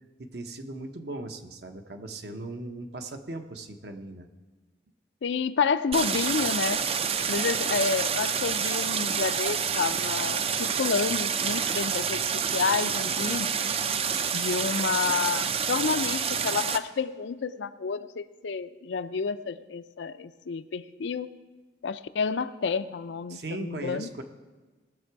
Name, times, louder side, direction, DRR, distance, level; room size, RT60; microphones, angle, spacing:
voice 1, 0.2-4.3 23.3-24.2, right 2 dB, 60° right, 6 dB, 0.9 m, -38 dB
voice 2, 5.2-6.8 7.3-12.2 12.5-13.5 14.3-21.3 21.8-24.1, left 5 dB, 75° left, 12 dB, 0.5 m, -29 dB
Stream, 5.9-16.8, right 7 dB, 30° right, 0.4 m, -28 dB
18.5 x 6.8 x 4.7 m, 1.3 s
head